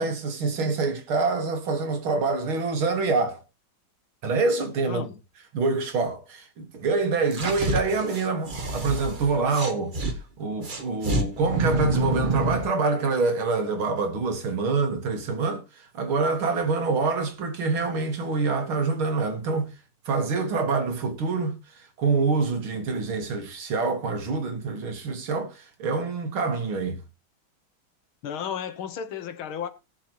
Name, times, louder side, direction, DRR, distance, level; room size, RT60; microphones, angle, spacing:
voice 1, 0.0-3.4 4.2-5.0 5.5-19.7 20.1-21.6 22.0-27.0, right 4 dB, 85° right, 2.6 m, -26 dB
voice 2, 4.9-5.2 28.2-29.7, left 8 dB, 85° left, 2.0 m, -33 dB
sound 1, 7.3-10.1 10.6-12.7, right 1 dB, 30° right, 1.2 m, -28 dB
18.5 x 6.7 x 3.0 m
omnidirectional pair, 2.2 m